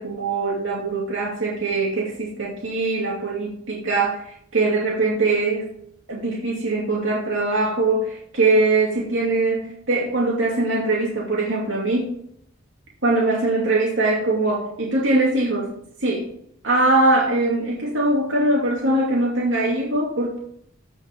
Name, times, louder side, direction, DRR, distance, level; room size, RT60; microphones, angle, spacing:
voice 1, 0.0-5.7 6.1-12.2 13.0-15.7 16.0-16.3 16.6-20.4, right 2 dB, 80° right, -3 dB, 2.5 m, -22 dB
15.5 x 5.3 x 5.3 m, 0.69 s
head